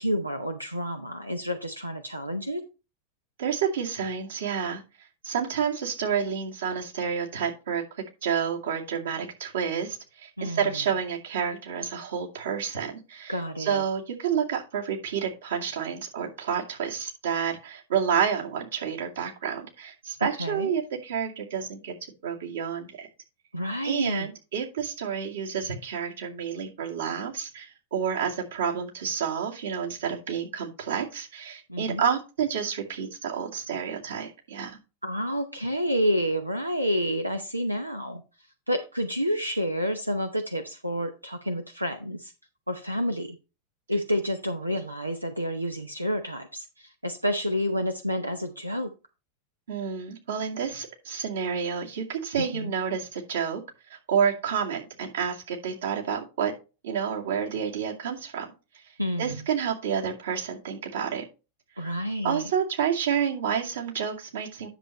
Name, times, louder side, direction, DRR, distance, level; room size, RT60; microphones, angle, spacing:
voice 1, 0.0-2.6 10.4-10.8 13.3-13.8 20.2-20.7 23.5-24.3 31.7-32.0 35.0-38.2 38.7-42.3 42.7-43.4 43.9-48.9 52.4-52.7 59.0-59.5 61.8-62.5, equal, 85° right, 6 dB, 0.7 m, -29 dB
voice 2, 3.4-4.8 5.2-7.8 8.2-21.9 22.2-23.1 23.8-34.8 49.7-53.6 53.9-56.5 56.8-58.5 59.2-61.2 61.8-61.9 62.2-64.7, right 7 dB, 65° right, -1 dB, 2.3 m, -29 dB
10.0 x 6.8 x 3.1 m, 0.31 s
figure-of-eight pair, 90°, 0 cm